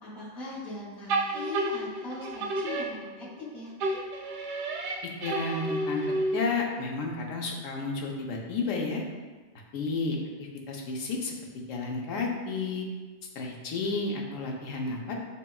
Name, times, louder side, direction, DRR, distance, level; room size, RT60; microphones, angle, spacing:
voice 1, 0.0-3.7, left 2 dB, 55° left, -7 dB, 1.4 m, -40 dB
sound 1, 1.1-3.5 3.8-6.6, right 2 dB, 85° right, 0.9 m, -31 dB
voice 2, 5.0-9.0 9.7-10.2 10.7-11.3 11.7-12.9 13.3-15.1, left 3 dB, 90° left, 0 dB, 1.0 m, -31 dB
6.6 x 2.2 x 2.3 m, 1.3 s
omnidirectional pair, 1.3 m